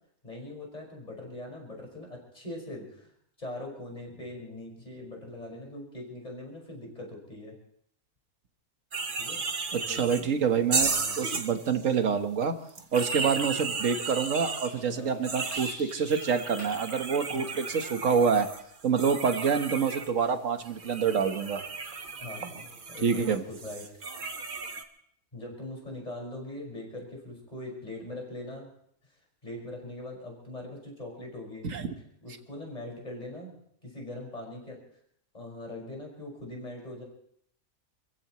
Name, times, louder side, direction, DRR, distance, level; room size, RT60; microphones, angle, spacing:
voice 1, 0.2-3.1 3.4-7.5 9.2-9.4 9.8-10.3 10.8-11.2 13.1-13.4 14.8-15.2 17.3-17.6 22.2-23.9 25.3-28.7 29.4-31.6 32.2-33.5 33.8-34.8 35.3-37.0, left 1 dB, 25° left, -1 dB, 5.6 m, -41 dB
sound 1, 8.9-10.2 10.7-11.9 12.7-14.7 15.2-20.1 20.6-24.8, right 4 dB, 35° right, 1.2 m, -34 dB
voice 2, 9.7-12.5 12.9-18.5 18.8-21.6 23.0-23.4 31.6-31.9, right 6 dB, 60° right, 7 dB, 1.6 m, -27 dB
sound 2, 14.4-16.3 16.6-16.8 17.3-17.5, left 1 dB, 75° left, 6.7 m, -46 dB
28.5 x 15.5 x 3.1 m, 0.69 s
omnidirectional pair, 1.6 m